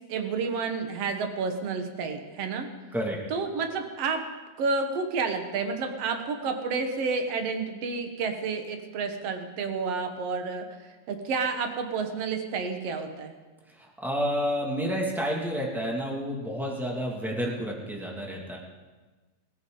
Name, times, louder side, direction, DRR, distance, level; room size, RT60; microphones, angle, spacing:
voice 1, 0.1-2.7 3.3-4.2 4.6-13.4, right 4 dB, 65° right, 5 dB, 1.6 m, -30 dB
voice 2, 13.7-18.6, equal, ahead, -2 dB, 0.5 m, -30 dB
22.0 x 14.5 x 3.9 m, 1.3 s
omnidirectional pair, 4.5 m